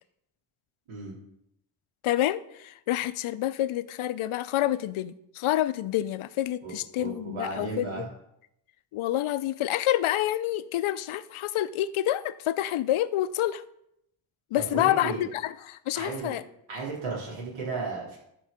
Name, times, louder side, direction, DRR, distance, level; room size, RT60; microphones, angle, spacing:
voice 1, 2.0-8.1 8.9-13.6 14.5-16.4, left 13 dB, 80° left, 15 dB, 0.6 m, -28 dB
voice 2, 6.6-8.0 14.7-15.2 15.9-16.3 16.7-18.2, right 4 dB, 75° right, -4 dB, 3.6 m, -34 dB
13.0 x 4.6 x 6.6 m, 0.79 s
wide cardioid pair, 140°, 49 cm